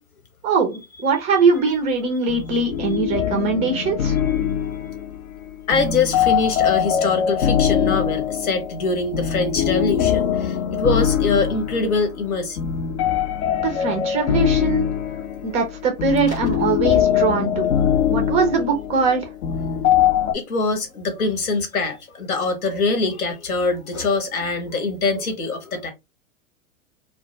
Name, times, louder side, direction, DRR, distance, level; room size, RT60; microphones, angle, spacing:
voice 1, 0.4-4.2 13.6-14.9 15.4-17.7 18.1-19.3, right 4 dB, 15° right, 0.3 m, -21 dB
sound 1, 2.3-20.3, left 9 dB, 65° left, 0.6 m, -22 dB
voice 2, 5.7-12.6 20.3-25.9, left 3 dB, 80° left, 1.0 m, -23 dB
2.2 x 2.1 x 2.7 m
hypercardioid pair, 105°, 42 cm